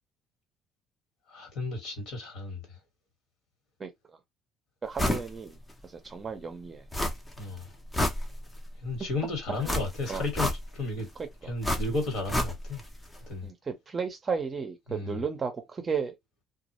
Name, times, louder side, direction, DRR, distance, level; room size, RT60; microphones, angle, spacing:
voice 1, 1.3-2.7 7.4-7.7 8.8-11.1 11.4-12.8 13.3-13.5 14.9-15.2, left 3 dB, 65° left, 1.3 m, -33 dB
voice 2, 4.8-5.6 5.8-6.9 10.1-10.3 11.2-11.3 13.4-16.2, right 5 dB, 30° right, 0.6 m, -33 dB
sound 1, 5.0-5.3 5.7-5.8 6.9-7.4 7.7-8.7 9.6-10.9 11.6-12.9 13.1-13.2, left 1 dB, 15° left, 0.6 m, -30 dB
2.3 x 2.0 x 2.9 m
cardioid pair, 120°, 0 cm